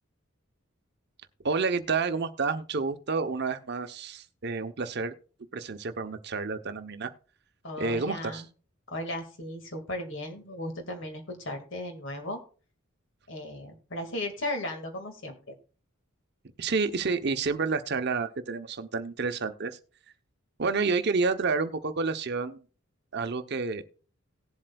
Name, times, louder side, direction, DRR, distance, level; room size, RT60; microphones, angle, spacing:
voice 1, 1.4-5.1 5.5-7.1 7.8-8.4 16.6-19.8 20.6-22.6 23.1-23.8, right 4 dB, 50° right, 9 dB, 0.7 m, -29 dB
voice 2, 7.6-8.5 8.9-12.4 13.3-15.5, left 1 dB, 60° left, 5 dB, 1.9 m, -36 dB
18.5 x 7.6 x 2.3 m, 0.38 s
head